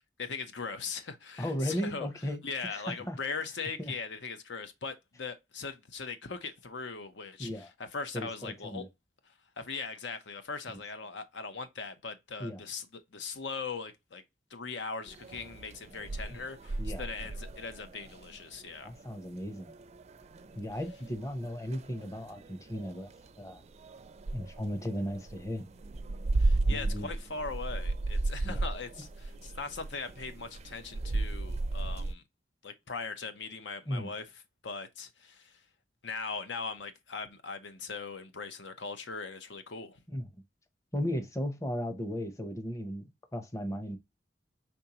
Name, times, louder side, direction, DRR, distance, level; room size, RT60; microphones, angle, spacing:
voice 1, 0.2-2.1 2.4-8.9 9.6-14.2 14.5-18.9 26.4-32.2 32.6-34.2 34.6-35.6 36.0-40.0, left 4 dB, 85° left, 0.8 m, -40 dB
voice 2, 1.4-3.2 3.8-3.9 7.4-7.7 8.1-8.3 8.6-8.9 10.7-10.8 12.4-12.6 16.8-17.0 18.8-19.7 20.5-23.1 23.4-23.6 24.3-25.6 26.7-27.1 28.4-28.6 33.9-34.1 40.1-40.2 40.9-44.0, equal, 20° left, 0.7 m, -36 dB
sound 1, 15.1-32.1, right 2 dB, 35° right, 0.4 m, -35 dB
5.3 x 3.5 x 2.9 m
head